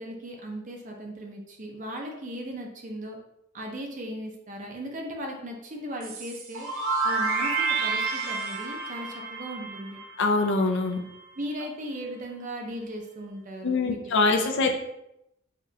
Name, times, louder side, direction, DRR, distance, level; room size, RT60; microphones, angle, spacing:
voice 1, 0.0-3.2 3.5-6.7 7.0-10.0 11.4-14.3, equal, 35° right, 1 dB, 0.6 m, -37 dB
sound 1, 6.0-10.8, right 4 dB, 85° right, 0.6 m, -30 dB
voice 2, 10.2-11.0 13.6-14.7, left 3 dB, 55° left, 4 dB, 0.5 m, -23 dB
4.9 x 2.4 x 2.7 m, 0.84 s
head